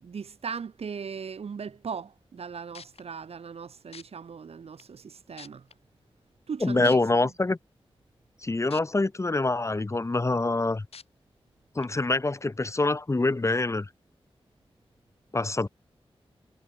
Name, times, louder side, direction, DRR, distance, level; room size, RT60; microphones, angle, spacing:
voice 1, 0.0-5.6 6.5-7.0, right 6 dB, 85° right, 2.4 m, -38 dB
sound 1, 2.4-2.5 2.7-3.0 3.9-4.0 4.8-4.9 5.4-5.7 6.8-7.0 8.7-8.8 9.3-9.4 10.9-11.0 11.8-11.9, left 6 dB, 80° left, 4.3 m, -45 dB
voice 2, 6.6-7.6 8.4-10.9 11.8-13.9 15.3-15.7, left 2 dB, 30° left, 1.8 m, -25 dB
wide cardioid pair, 100°, 10 cm